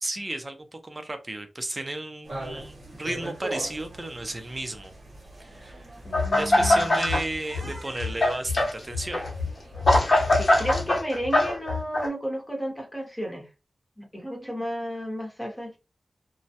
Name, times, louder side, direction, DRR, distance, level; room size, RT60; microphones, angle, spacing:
voice 1, 0.0-4.9 5.4-5.9 6.3-9.3, right 1 dB, 30° right, 0.5 m, -33 dB
sound 1, 2.2-10.9, right 2 dB, 55° right, 0.9 m, -42 dB
voice 2, 6.0-7.1 10.2-13.5 14.0-15.8, equal, 10° left, 0.9 m, -33 dB
sound 2, 6.1-7.2 7.5-12.1, left 2 dB, 50° left, 0.8 m, -22 dB
2.2 x 2.0 x 2.7 m
wide cardioid pair, 80°, 0 cm